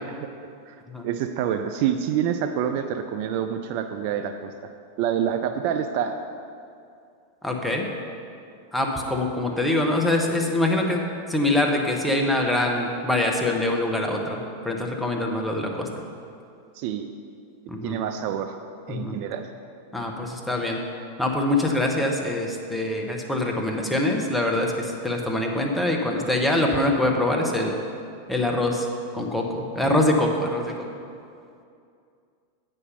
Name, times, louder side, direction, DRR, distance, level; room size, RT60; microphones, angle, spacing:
voice 1, 1.0-4.5 5.0-6.3 16.8-17.1 17.8-18.6 18.9-19.5, right 9 dB, 45° right, 7 dB, 0.4 m, -27 dB
voice 2, 7.4-7.9 8.7-15.9 17.7-18.0 18.9-19.2 19.9-20.8 21.2-27.8 28.3-28.9 29.1-30.9, left 1 dB, 5° left, 1 dB, 1.0 m, -24 dB
8.2 x 5.4 x 5.5 m, 2.5 s
figure-of-eight pair, 90°, 0 cm